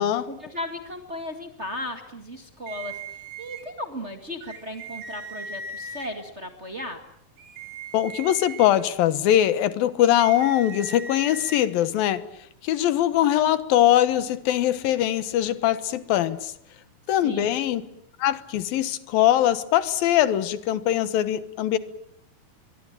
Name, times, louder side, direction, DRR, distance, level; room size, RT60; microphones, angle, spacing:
voice 1, 0.3-7.0 17.2-17.6, left 1 dB, 25° right, 1.6 m, -36 dB
sound 1, 2.7-3.6 4.4-6.1 7.4-8.7 10.0-11.6, right 4 dB, 75° right, 4.8 m, -38 dB
voice 2, 7.9-12.2 12.6-16.5 17.1-17.9 18.2-21.8, left 12 dB, 80° left, 3.0 m, -22 dB
23.5 x 23.5 x 9.0 m
omnidirectional pair, 4.2 m